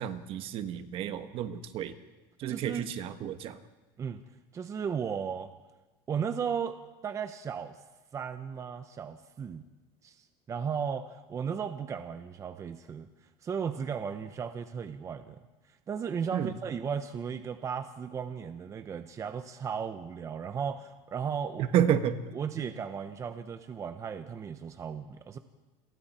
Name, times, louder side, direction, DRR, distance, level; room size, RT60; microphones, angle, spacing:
voice 1, 0.0-1.9 2.4-3.6 16.3-16.5 21.6-22.2, right 10 dB, 50° right, 9 dB, 1.4 m, -30 dB
voice 2, 2.5-2.9 3.2-3.4 4.0-4.2 4.5-5.5 6.1-7.8 8.1-9.6 10.0-13.1 13.4-15.4 15.7-21.7 22.3-25.4, right 7 dB, 25° right, 9 dB, 0.9 m, -35 dB
29.0 x 23.0 x 4.4 m, 1.2 s
cardioid pair, 140°, 12 cm